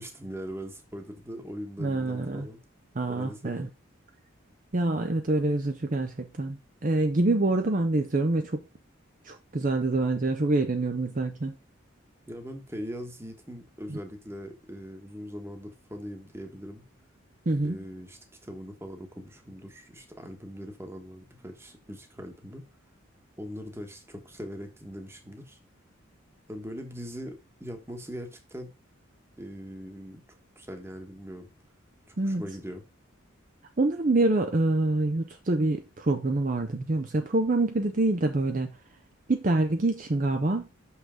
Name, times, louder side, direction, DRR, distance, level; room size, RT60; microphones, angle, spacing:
voice 1, 0.0-2.6 3.0-3.6 12.3-16.8 17.6-22.7 23.4-25.6 26.5-28.7 29.4-30.2 30.6-31.5 32.1-32.8, equal, 10° right, 1.2 m, -41 dB
voice 2, 1.8-2.5 3.0-3.7 4.7-8.6 9.3-11.5 13.9-14.0 17.5-17.8 32.2-32.4 33.8-38.7 39.3-40.7, right 2 dB, 40° right, 0.6 m, -26 dB
6.2 x 5.7 x 5.0 m
head